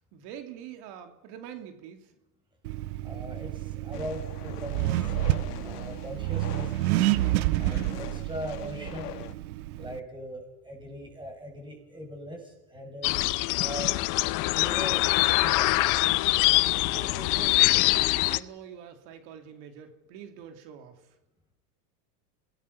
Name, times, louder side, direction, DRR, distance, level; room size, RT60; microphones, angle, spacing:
voice 1, 0.1-2.1 16.9-21.1, right 9 dB, 55° right, 6 dB, 2.9 m, -45 dB
Accelerating revving vroom, 2.7-10.0, right 16 dB, 70° right, 0.9 m, -29 dB
voice 2, 3.0-5.1 5.6-6.7 7.6-9.1 9.8-13.1 13.6-13.9 14.5-15.0 15.4-15.8, equal, 10° right, 2 dB, 7.3 m, -40 dB
sound 1, 3.9-9.3, left 13 dB, 80° left, 1.4 m, -43 dB
sound 2, 13.0-18.4, left 21 dB, 45° left, 0.7 m, -24 dB
26.5 x 19.0 x 5.7 m, 0.93 s
supercardioid pair, 120°, 46 cm